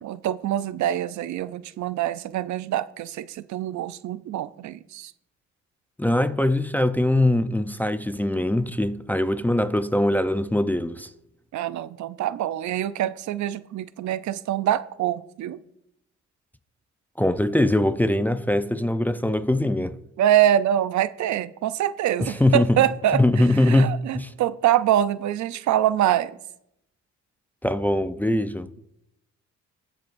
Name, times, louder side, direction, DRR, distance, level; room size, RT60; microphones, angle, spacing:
voice 1, 0.0-5.1 11.5-15.6 20.2-26.3, right 11 dB, 70° right, 0.6 m, -24 dB
voice 2, 6.0-11.1 17.2-20.0 22.2-22.8 23.1-24.3 27.6-28.7, left 1 dB, 5° left, 0.4 m, -22 dB
20.0 x 7.7 x 2.6 m
cardioid pair, 90°, 30 cm